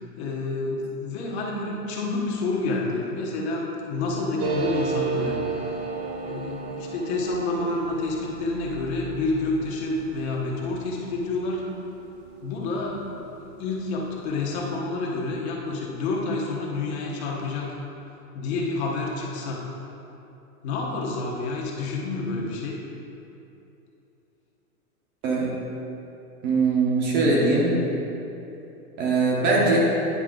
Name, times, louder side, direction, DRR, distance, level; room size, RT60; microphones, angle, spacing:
voice 1, 0.0-5.4 6.2-11.6 12.4-13.0 13.4-17.8 18.3-19.6 20.6-22.8, left 3 dB, 45° left, -2 dB, 1.3 m, -28 dB
sound 1, 4.4-13.5 13.8-13.9 14.1-14.7, right 5 dB, 45° right, 1.2 m, -34 dB
voice 2, 25.2-25.6 26.4-27.9 29.0-29.8, right 3 dB, 25° right, -4 dB, 0.8 m, -21 dB
9.8 x 4.7 x 3.8 m, 2.9 s
hypercardioid pair, 145°, 45 cm